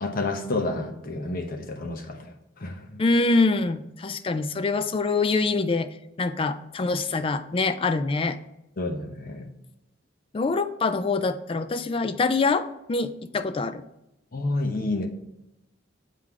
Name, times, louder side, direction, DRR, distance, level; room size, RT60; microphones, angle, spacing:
voice 1, 0.0-2.3 2.6-3.0 8.8-9.5 14.3-15.1, left 2 dB, 50° left, 5 dB, 0.9 m, -29 dB
voice 2, 3.0-5.9 6.2-8.4 10.3-13.8, left 3 dB, 30° left, 12 dB, 0.4 m, -25 dB
7.5 x 3.8 x 4.7 m, 0.89 s
head